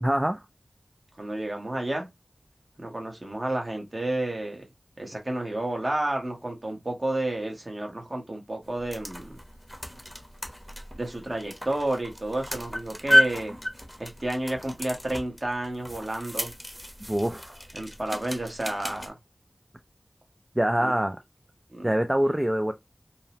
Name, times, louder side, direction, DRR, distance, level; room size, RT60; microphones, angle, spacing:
voice 1, 0.0-0.4 17.1-17.6 20.6-21.2 21.8-22.7, right 1 dB, 20° right, 0.3 m, -24 dB
voice 2, 1.2-2.1 2.8-4.6 5.0-9.3 11.0-13.6 14.0-16.5 17.7-19.1 20.8-20.9 21.7-21.9 22.2-22.3, right 1 dB, 45° right, 1.0 m, -31 dB
sound 1, 8.6-19.1, equal, 5° left, 0.8 m, -31 dB
2.8 x 2.0 x 2.7 m
wide cardioid pair, 55°, 0 cm